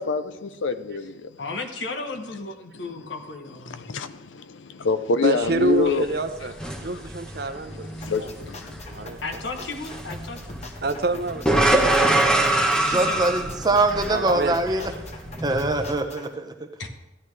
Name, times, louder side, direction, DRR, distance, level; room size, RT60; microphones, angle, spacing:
voice 1, 0.0-1.3 3.7-6.0 7.7-9.2, left 4 dB, 90° left, 0.6 m, -27 dB
voice 2, 1.4-3.9 8.0-8.1 9.2-10.7 12.7-13.8 16.8-16.9, left 3 dB, 75° left, 1.2 m, -35 dB
voice 3, 5.2-6.6 6.8-7.8 8.1-8.3 8.9-9.4 10.8-12.0 14.1-14.6, right 2 dB, 55° right, 0.7 m, -27 dB
sound 1, 5.4-15.9, right 1 dB, 5° left, 0.9 m, -26 dB
sound 2, 8.0-16.3, left 2 dB, 35° left, 0.9 m, -43 dB
voice 4, 12.9-14.9 15.4-16.7, right 2 dB, 20° right, 0.8 m, -23 dB
13.5 x 10.5 x 3.2 m
head